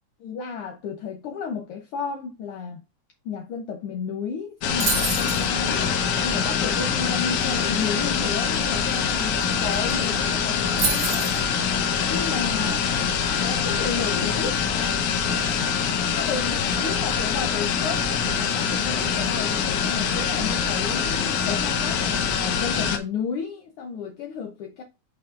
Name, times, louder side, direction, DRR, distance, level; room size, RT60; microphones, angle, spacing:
voice 1, 0.2-2.8 3.2-11.7 12.1-12.9 13.4-14.6 16.2-24.8, left 6 dB, 70° left, 1.4 m, -33 dB
sound 1, 4.6-23.0, left 7 dB, 85° left, 2.5 m, -24 dB
sound 2, 4.8-5.5 9.4-9.5 9.7-10.1 10.8-11.4, right 4 dB, 40° right, 1.7 m, -26 dB
6.9 x 5.8 x 2.5 m
omnidirectional pair, 3.4 m